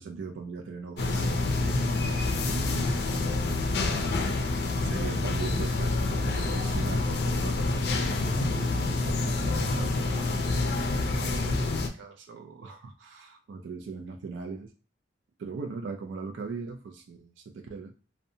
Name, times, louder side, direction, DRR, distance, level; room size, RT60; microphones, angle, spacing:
voice 1, 0.0-3.0 4.5-14.7 15.4-17.9, right 4 dB, 80° right, 4 dB, 0.3 m, -40 dB
sound 1, 1.0-11.9, left 2 dB, 60° left, 0.4 m, -27 dB
2.6 x 2.1 x 2.6 m, 0.36 s
head